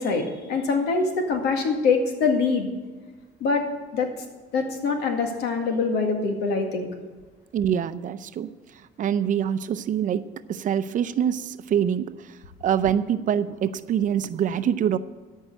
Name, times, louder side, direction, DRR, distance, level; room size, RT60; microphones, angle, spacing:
voice 1, 0.0-2.7 3.4-3.6 3.9-4.1 4.5-6.9, left 4 dB, 80° left, 4 dB, 2.0 m, -24 dB
voice 2, 7.5-8.5 9.0-10.2 10.5-12.1 12.6-15.0, right 9 dB, 50° right, 13 dB, 0.6 m, -24 dB
13.5 x 5.6 x 7.9 m, 1.3 s
cardioid pair, 110°, 17 cm